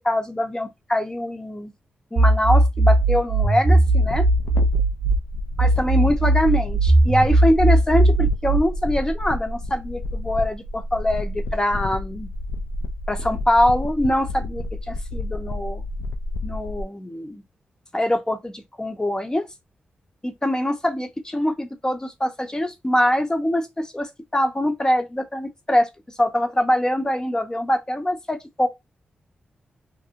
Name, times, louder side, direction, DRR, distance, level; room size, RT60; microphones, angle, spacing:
voice 1, 0.0-1.7 2.1-4.3 5.6-12.3 13.1-15.8 16.4-17.4 17.9-18.5 18.8-19.5 20.2-25.9 26.2-28.7, left 1 dB, 20° left, 0.6 m, -23 dB
sound 1, 2.2-5.2 5.6-8.6, right 2 dB, 55° right, 0.5 m, -18 dB
sound 2, 4.0-16.8, left 1 dB, 85° left, 0.3 m, -30 dB
2.5 x 2.0 x 2.7 m
cardioid pair, 60°, 4 cm